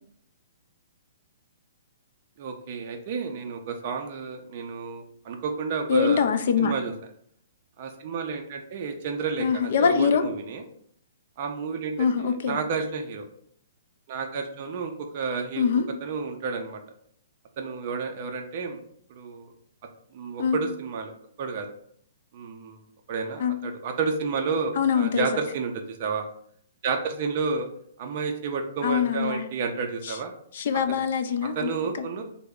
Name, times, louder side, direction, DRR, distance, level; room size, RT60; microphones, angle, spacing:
voice 1, 2.4-6.2 6.6-6.9 7.8-10.6 11.4-13.2 14.1-15.7 16.0-16.8 17.6-18.8 19.1-19.5 20.1-21.1 21.4-21.7 22.3-22.8 23.1-26.3 26.8-27.7 28.0-30.3 30.9-31.0 31.6-32.2, right 5 dB, 40° right, 3 dB, 0.4 m, -31 dB
voice 2, 5.9-6.7 9.4-10.2 12.0-12.6 15.6-15.9 20.4-20.6 23.4-23.6 24.8-25.3 28.8-29.5 30.0-30.2 30.5-31.7 32.0-32.1, left 7 dB, 55° left, 9 dB, 0.4 m, -23 dB
3.3 x 2.0 x 3.5 m, 0.64 s
hypercardioid pair, 160°, 0 cm